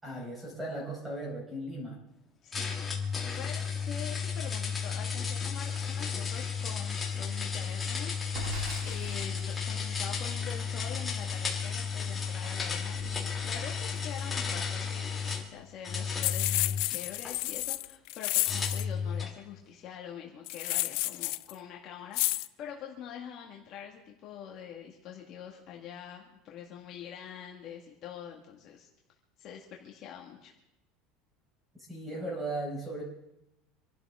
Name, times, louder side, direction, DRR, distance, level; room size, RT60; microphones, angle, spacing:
voice 1, 0.0-2.0 31.9-33.0, right 1 dB, 5° right, -2 dB, 4.5 m, -37 dB
voice 2, 2.4-2.9 3.4-8.6 8.8-28.9 29.4-30.5, left 8 dB, 35° left, 0 dB, 1.7 m, -45 dB
sound 1, 2.5-15.5 15.8-17.3 18.4-19.4, left 6 dB, 10° left, 1.8 m, -33 dB
Crackle, 8.2-16.3 16.6-16.7 17.1-17.8, equal, 90° right, 8.0 m, -46 dB
sound 2, 16.2-18.8 20.5-21.5 22.1-22.5, left 20 dB, 55° left, 0.4 m, -31 dB
26.5 x 12.0 x 3.6 m, 0.84 s
cardioid pair, 175°, 0 cm